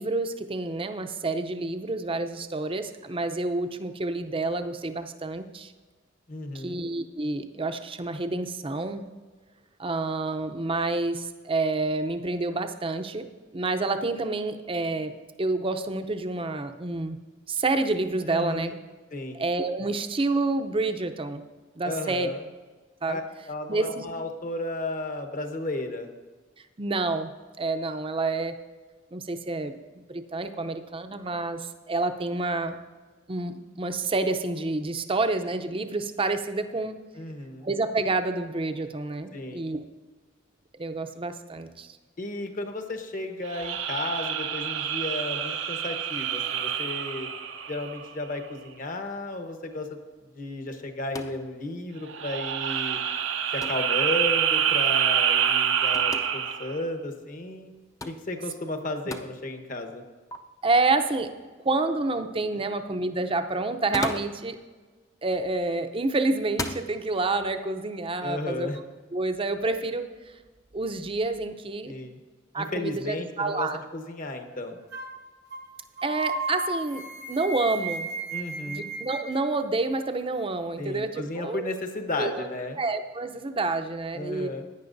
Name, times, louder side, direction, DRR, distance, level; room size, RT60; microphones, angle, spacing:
voice 1, 0.0-5.7 6.5-9.1 9.8-13.3 13.5-17.2 17.5-18.7 19.3-21.4 21.8-22.3 23.0-23.2 23.7-24.0 26.8-28.5 29.1-29.7 30.1-32.8 33.3-37.0 37.6-39.8 40.8-42.0 60.6-61.3 61.6-64.6 65.2-68.7 69.1-70.1 70.7-71.9 72.5-73.8 76.0-78.1 78.6-81.7 82.2-82.5 82.8-84.5, right 3 dB, 30° right, 8 dB, 0.6 m, -28 dB
voice 2, 6.3-6.8 18.3-18.8 19.1-19.4 21.8-22.4 23.1-23.2 23.5-26.1 37.1-37.7 39.3-39.7 42.2-47.3 47.7-50.0 50.3-53.0 53.5-57.7 58.0-60.0 62.5-62.6 68.2-68.8 71.9-72.2 72.6-74.8 78.3-78.9 80.8-82.8 84.1-84.7, left 2 dB, 45° left, 5 dB, 1.1 m, -34 dB
sound 1, 43.5-48.2 52.1-56.8, right 8 dB, 75° right, 0.7 m, -27 dB
sound 2, 51.1-51.5 53.6-53.9 55.9-56.3 58.0-58.2 59.1-59.3 60.3-60.4 63.7-64.4 65.5-65.9 66.5-66.9, left 2 dB, 20° left, 0.6 m, -34 dB
sound 3, 74.9-75.2 75.5-75.7 76.0-79.4, right 3 dB, 60° right, 1.0 m, -34 dB
16.0 x 9.8 x 2.6 m, 1.3 s
head